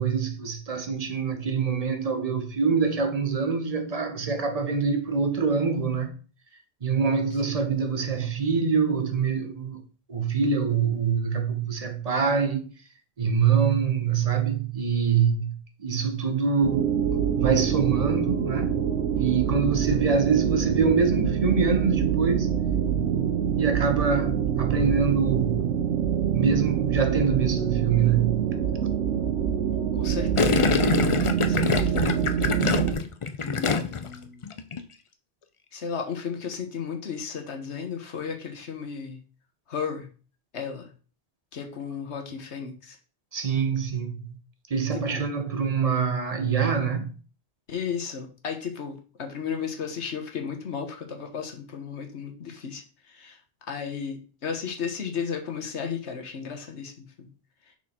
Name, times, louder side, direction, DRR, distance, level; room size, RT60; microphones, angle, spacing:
voice 1, 0.0-6.1 6.8-9.8 10.1-12.7 13.2-15.5 15.8-17.0 17.3-18.8 19.2-22.5 23.6-25.7 26.3-28.5 43.3-44.4 44.7-47.1, right 6 dB, 35° right, 0.9 m, -25 dB
sound 1, 16.6-32.9, right 8 dB, 85° right, 1.2 m, -25 dB
voice 2, 29.9-30.7 31.4-32.0 33.4-34.5 35.7-39.2 39.7-40.1 40.5-40.9 41.5-43.0 45.1-45.2 47.7-53.4 53.7-57.3, left 6 dB, 80° left, 1.5 m, -34 dB
Gurgling, 30.4-34.1 34.4-34.8, left 5 dB, 45° left, 0.4 m, -25 dB
6.2 x 4.5 x 4.4 m
omnidirectional pair, 1.1 m